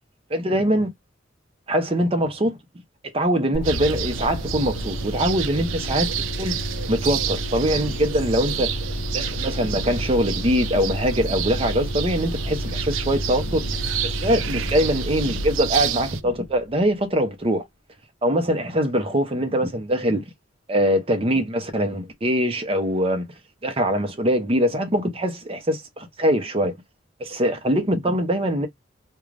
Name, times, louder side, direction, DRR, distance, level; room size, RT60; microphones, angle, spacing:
voice 1, 0.3-0.9 1.7-2.6 3.1-6.1 6.4-6.6 6.9-8.7 9.1-13.6 14.0-17.7 18.2-20.3 20.7-23.3 23.6-26.8 27.2-28.7, equal, 30° right, 0.7 m, -23 dB
sound 1, 3.5-17.0, left 1 dB, 55° left, 0.7 m, -31 dB
sound 2, 3.6-16.2, right 10 dB, 80° right, 0.4 m, -30 dB
2.5 x 2.2 x 3.2 m
head